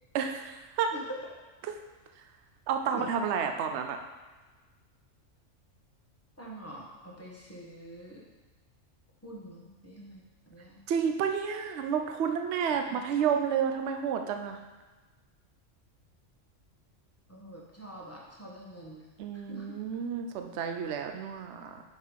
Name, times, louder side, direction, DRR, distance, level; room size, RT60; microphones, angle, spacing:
voice 1, 0.1-0.9 2.7-4.0 10.9-14.6 19.2-21.8, right 7 dB, 65° right, 5 dB, 0.9 m, -30 dB
voice 2, 6.4-8.3 9.2-10.8 12.9-13.0 17.3-19.1 19.3-19.8, right 1 dB, 10° left, -5 dB, 1.4 m, -45 dB
6.0 x 5.5 x 4.7 m, 1.3 s
omnidirectional pair, 1.3 m